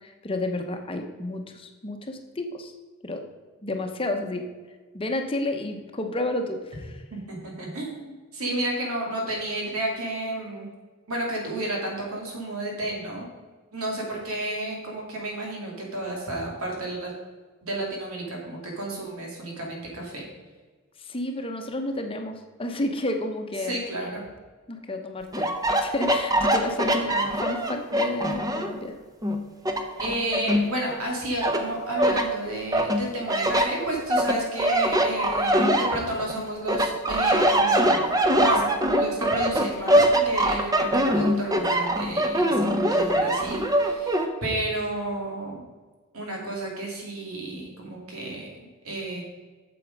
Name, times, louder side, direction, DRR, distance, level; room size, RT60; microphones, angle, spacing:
voice 1, 0.0-2.7 3.0-3.3 3.6-4.4 4.9-7.0 21.0-23.8 24.7-25.5 25.8-27.2 27.4-28.9, left 1 dB, 25° left, 4 dB, 0.8 m, -31 dB
voice 2, 7.1-10.7 11.1-13.3 13.7-17.1 17.6-20.3 23.6-24.2 27.0-27.3 30.0-38.6 38.9-45.6 46.1-49.2, right 1 dB, 85° right, -1 dB, 2.7 m, -32 dB
sound 1, 25.3-28.8 29.2-31.0 31.4-32.3 32.7-36.3 36.7-44.3, right 1 dB, 15° right, 0.7 m, -23 dB
8.2 x 7.0 x 5.2 m, 1.4 s
head